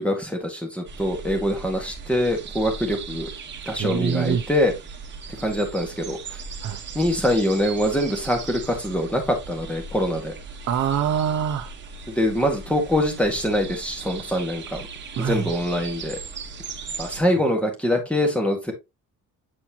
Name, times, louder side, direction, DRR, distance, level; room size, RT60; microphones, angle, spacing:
voice 1, 0.0-3.3 3.7-4.7 5.4-6.4 6.9-10.3 12.1-14.9 15.3-16.2 17.0-18.7, equal, 5° left, 1.8 m, -24 dB
sound 1, 0.8-17.2, right 5 dB, 35° right, 1.4 m, -38 dB
voice 2, 3.8-4.4 6.6-6.8 10.7-11.7 15.2-15.5, right 8 dB, 55° right, 0.8 m, -24 dB
8.6 x 4.3 x 2.9 m
cardioid pair, 155°, 31 cm